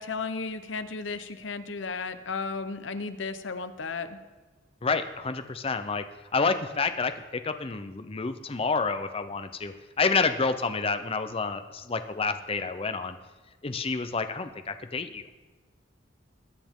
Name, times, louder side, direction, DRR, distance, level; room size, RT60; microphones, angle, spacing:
voice 1, 0.0-4.2, left 4 dB, 70° left, 11 dB, 0.8 m, -34 dB
voice 2, 4.8-6.0 6.3-7.1 7.4-13.2 13.6-15.2, left 4 dB, 30° left, 9 dB, 0.6 m, -29 dB
21.0 x 9.3 x 3.7 m, 1.3 s
head